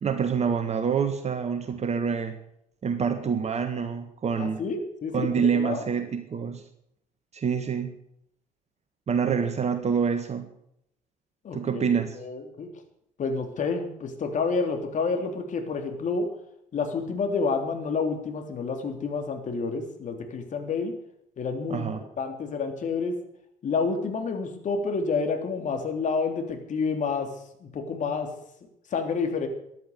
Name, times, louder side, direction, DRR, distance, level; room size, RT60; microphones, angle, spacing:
voice 1, 0.0-2.4 2.8-4.6 5.1-6.6 7.3-7.9 9.1-10.5 11.5-12.2 21.7-22.1, right 6 dB, 40° right, 8 dB, 1.7 m, -26 dB
voice 2, 4.4-5.8 11.4-12.7 13.2-16.4 16.7-20.9 21.4-21.9 22.2-23.2 23.6-28.3 28.9-29.5, left 4 dB, 45° left, 5 dB, 3.4 m, -29 dB
14.5 x 11.0 x 8.1 m, 0.73 s
figure-of-eight pair, 55°, 18 cm